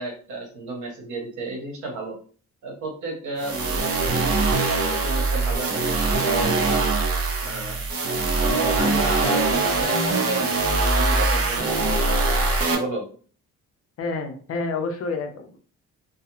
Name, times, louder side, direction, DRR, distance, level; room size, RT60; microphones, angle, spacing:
voice 1, 0.0-2.1 2.6-4.4 4.9-6.8 7.4-7.8 8.4-12.1 12.7-13.0, right 2 dB, 80° right, 0 dB, 1.1 m, -32 dB
sound 1, 3.4-12.8, right 3 dB, 50° right, 0.7 m, -22 dB
voice 2, 14.0-15.6, left 3 dB, 50° left, 6 dB, 0.6 m, -29 dB
2.3 x 2.2 x 2.9 m, 0.43 s
cardioid pair, 90°, 30 cm